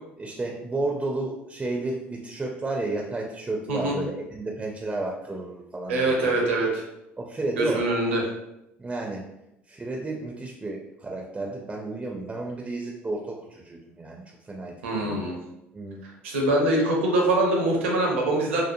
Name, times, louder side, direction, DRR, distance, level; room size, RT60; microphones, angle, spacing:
voice 1, 0.2-6.4 7.2-7.9 8.8-9.2 9.7-15.2 15.7-16.0, right 2 dB, 15° right, 0 dB, 0.4 m, -32 dB
voice 2, 5.9-6.8 7.6-8.3 14.8-15.4 16.2-18.6, right 2 dB, 75° right, -1 dB, 0.6 m, -23 dB
2.8 x 2.1 x 2.5 m, 0.87 s
figure-of-eight pair, 60°, 7 cm